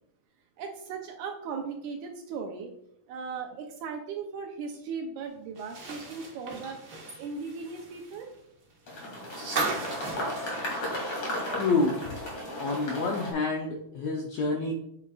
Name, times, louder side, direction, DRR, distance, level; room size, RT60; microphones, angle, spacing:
voice 1, 0.6-2.7 3.1-6.8 7.2-8.3 14.6-14.7, right 5 dB, 75° right, 3 dB, 1.9 m, -38 dB
sound 1, 5.6-11.6 11.9-12.0 13.4-13.5, right 3 dB, 60° right, 1.0 m, -37 dB
sound 2, 8.9-13.3, left 1 dB, 40° left, 2.6 m, -34 dB
voice 2, 11.6-12.0 12.6-14.7, left 3 dB, 80° left, 1 dB, 1.5 m, -28 dB
8.4 x 7.1 x 2.4 m, 0.74 s
omnidirectional pair, 4.0 m